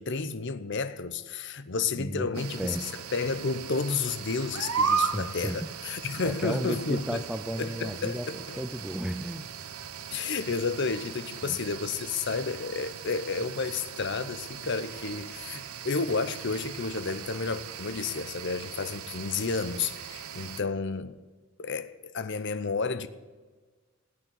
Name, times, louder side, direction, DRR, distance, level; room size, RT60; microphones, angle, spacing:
voice 1, 0.0-7.2 7.6-8.6 10.1-21.2 21.6-23.1, left 4 dB, 55° left, 0.7 m, -31 dB
voice 2, 2.0-3.0 5.1-5.7 6.2-9.5 11.4-11.6, equal, 5° right, 0.4 m, -34 dB
sound 1, 2.3-20.6, right 6 dB, 85° right, 0.9 m, -37 dB
16.0 x 8.7 x 8.2 m
head